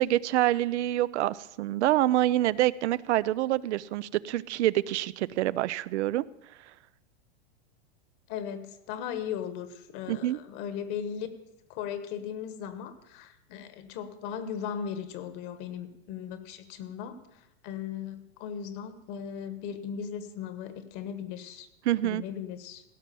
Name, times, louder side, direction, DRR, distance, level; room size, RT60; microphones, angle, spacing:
voice 1, 0.0-6.2 10.1-10.4 21.9-22.2, right 14 dB, 75° right, 18 dB, 0.5 m, -26 dB
voice 2, 8.3-11.3 11.7-21.7 22.0-22.8, left 8 dB, 45° left, 11 dB, 1.3 m, -37 dB
16.5 x 6.1 x 6.9 m, 0.87 s
supercardioid pair, 140°, 34 cm